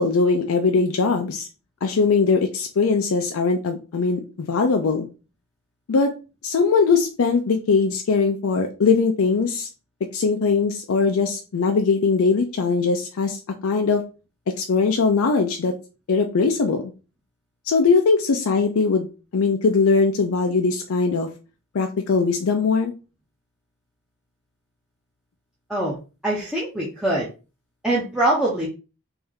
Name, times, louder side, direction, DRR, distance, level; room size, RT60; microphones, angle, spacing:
voice 1, 0.0-1.5 1.8-5.1 5.9-6.1 6.4-9.7 10.1-14.0 14.6-15.7 16.1-16.9 17.7-21.3 21.7-22.9, left 4 dB, 70° left, 4 dB, 0.4 m, -20 dB
voice 2, 26.2-27.3 27.8-28.7, right 1 dB, 5° right, -6 dB, 0.6 m, -23 dB
3.3 x 2.6 x 3.5 m, 0.32 s
head